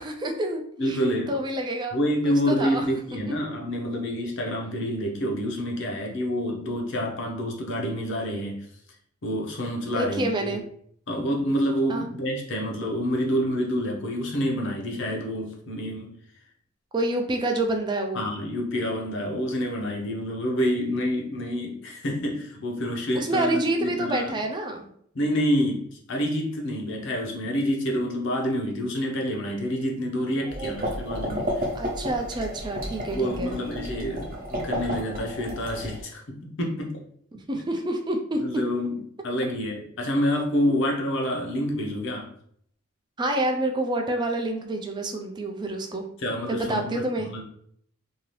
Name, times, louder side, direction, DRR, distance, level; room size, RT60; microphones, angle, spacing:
voice 1, 0.0-1.9 2.5-2.9 3.3-3.4 9.9-10.6 11.9-12.1 16.9-18.2 23.1-24.9 30.4-31.5 31.7-33.6 37.3-38.4 43.2-46.0 46.5-47.3, right 1 dB, 20° right, 3 dB, 0.4 m, -28 dB
voice 2, 0.8-1.3 1.9-8.6 9.2-10.6 11.1-16.1 18.1-24.3 25.1-31.6 33.1-37.0 38.3-42.3 46.2-47.4, equal, 60° left, 0 dB, 0.7 m, -28 dB
sound 1, 30.5-36.0, equal, 40° right, 0.8 m, -32 dB
2.7 x 2.5 x 3.1 m, 0.65 s
head